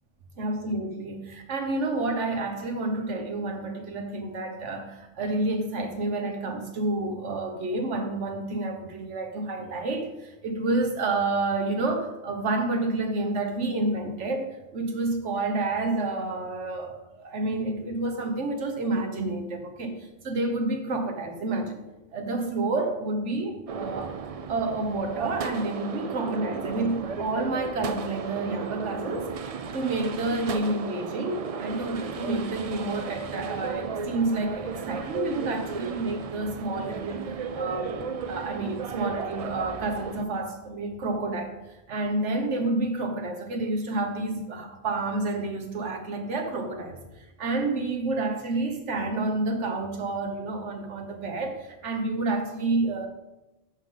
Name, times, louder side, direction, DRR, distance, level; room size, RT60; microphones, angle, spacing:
voice 1, 0.4-21.8 22.1-24.2 24.5-41.5 41.9-47.0 47.4-53.1, right 2 dB, 75° right, 5 dB, 1.4 m, -29 dB
sound 1, 23.7-40.2, right 5 dB, 60° right, 0.3 m, -34 dB
13.5 x 5.0 x 3.8 m, 0.99 s
omnidirectional pair, 1.2 m